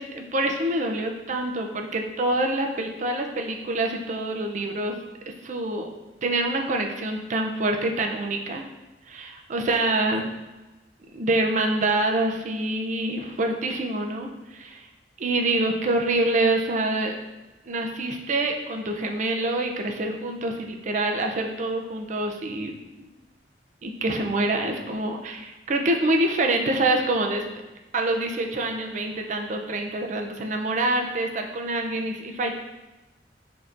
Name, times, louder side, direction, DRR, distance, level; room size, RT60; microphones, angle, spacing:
voice 1, 0.0-4.9 5.4-5.9 6.2-8.7 9.1-10.2 11.1-14.9 15.2-17.2 17.6-23.1 23.8-27.5 27.9-32.5, right 2 dB, 45° right, 3 dB, 0.4 m, -26 dB
6.3 x 2.8 x 2.5 m, 1.1 s
head